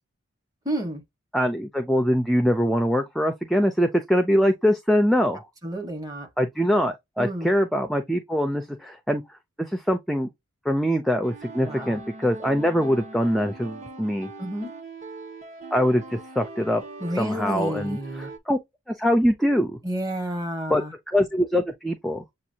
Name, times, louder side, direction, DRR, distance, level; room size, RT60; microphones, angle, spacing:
voice 1, 0.6-1.0 5.6-6.3 7.2-7.5 11.6-12.0 14.4-14.7 17.0-18.3 19.8-20.9, right 1 dB, 15° right, 1.6 m, -30 dB
voice 2, 1.3-5.4 6.4-9.2 9.6-10.3 10.7-14.3 15.7-16.8 17.2-18.6 18.9-19.8 20.7-22.2, equal, ahead, 0.5 m, -23 dB
sound 1, 11.2-18.4, right 3 dB, 30° right, 1.1 m, -41 dB
7.3 x 2.5 x 2.8 m
head